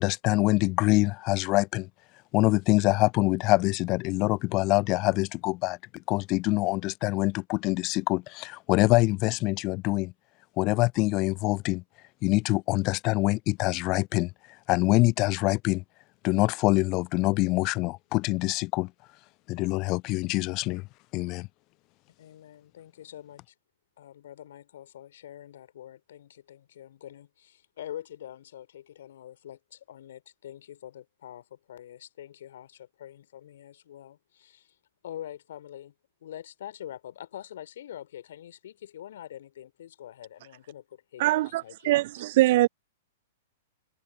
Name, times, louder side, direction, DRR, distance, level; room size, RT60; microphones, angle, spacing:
voice 1, 0.0-1.9 2.3-5.8 6.1-10.1 10.6-11.8 12.2-14.3 14.7-15.8 16.2-18.9 19.5-20.8 21.1-21.5, left 23 dB, 35° left, 0.4 m, -25 dB
voice 2, 22.2-23.5 24.0-34.8 35.0-35.9 36.2-42.0, left 11 dB, 55° left, 2.9 m, -45 dB
voice 3, 41.2-42.7, right 17 dB, 50° right, 0.4 m, -23 dB
figure-of-eight pair, 105°, 0 cm